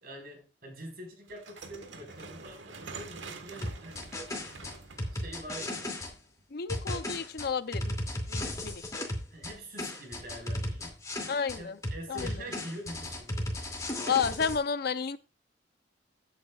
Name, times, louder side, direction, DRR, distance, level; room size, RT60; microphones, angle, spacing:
voice 1, 0.0-4.1 5.1-5.9 9.3-11.0 11.6-13.7, right 1 dB, 55° right, 4.5 m, -45 dB
sound 1, 1.3-6.4, right 4 dB, 80° right, 1.5 m, -46 dB
sound 2, 3.6-6.1 6.7-9.5 9.8-11.6 11.8-14.6, left 1 dB, 20° left, 2.5 m, -35 dB
voice 2, 6.5-8.0 8.3-8.8 11.3-11.8 12.1-12.3 14.1-15.2, left 6 dB, 55° left, 0.6 m, -31 dB
15.5 x 8.5 x 2.4 m
head